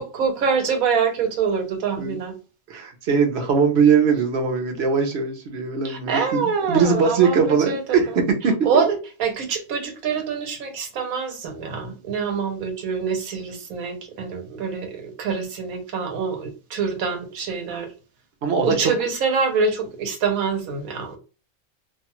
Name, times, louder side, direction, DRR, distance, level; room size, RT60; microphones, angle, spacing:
voice 1, 0.0-2.3 5.8-8.0 8.6-17.9 18.6-21.2, right 5 dB, 90° right, 1.2 m, -25 dB
voice 2, 2.7-8.5 18.4-18.9, right 5 dB, 55° right, 0.9 m, -21 dB
2.6 x 2.3 x 2.9 m
omnidirectional pair, 1.4 m